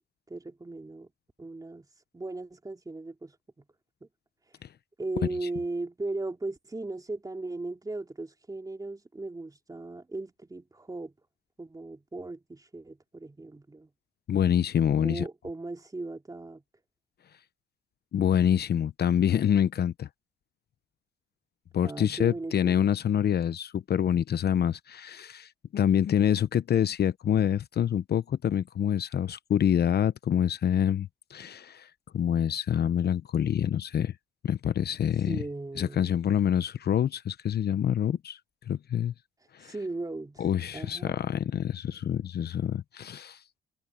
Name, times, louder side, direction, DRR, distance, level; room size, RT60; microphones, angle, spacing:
voice 1, 0.3-1.1 1.4-1.9 2.1-3.6 5.0-11.1 11.6-13.9 15.0-16.6 21.8-22.9 35.3-36.1 39.6-40.5 40.7-41.1, right 2 dB, 20° right, 3.0 m, -37 dB
voice 2, 14.3-15.3 18.1-20.1 21.7-34.1 34.4-35.4 35.8-38.4 38.7-39.1 39.5-39.7 40.4-43.4, left 9 dB, 55° left, 0.9 m, -26 dB
cardioid pair, 90°, 20 cm